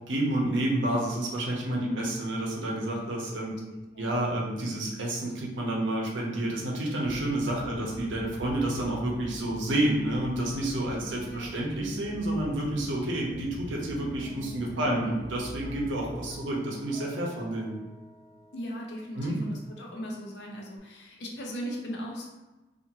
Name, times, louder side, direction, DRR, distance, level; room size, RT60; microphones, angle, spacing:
voice 1, 0.1-3.5 4.0-17.7 19.2-19.4, right 1 dB, 85° right, -2 dB, 0.7 m, -29 dB
voice 2, 1.7-2.2 3.5-4.2 7.6-8.0 11.3-11.5 14.7-15.2 18.5-22.3, equal, 65° left, -1 dB, 0.6 m, -38 dB
sound 1, 7.0-16.4, right 1 dB, 40° right, 0.3 m, -44 dB
Guitar, 14.2-20.8, right 1 dB, 20° right, 0.7 m, -50 dB
2.5 x 2.5 x 2.9 m, 1.1 s
head